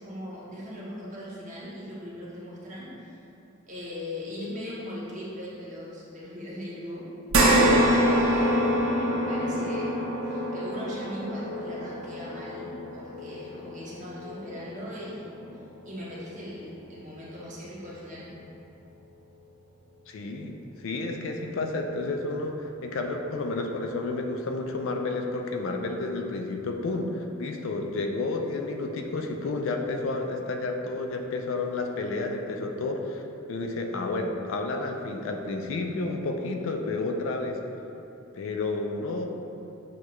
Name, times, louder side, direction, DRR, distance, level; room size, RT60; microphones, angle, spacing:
voice 1, 0.0-3.2 3.6-7.1 8.3-9.9 10.2-15.4 15.8-18.3, left 1 dB, 35° right, -7 dB, 0.9 m, -39 dB
sound 1, 7.3-15.9 16.4-16.5 17.9-18.0, equal, 85° right, 0.6 m, -26 dB
voice 2, 20.1-33.2 33.5-37.6 38.3-39.2, left 3 dB, 65° left, 3 dB, 0.3 m, -31 dB
6.3 x 2.3 x 3.0 m, 2.9 s
head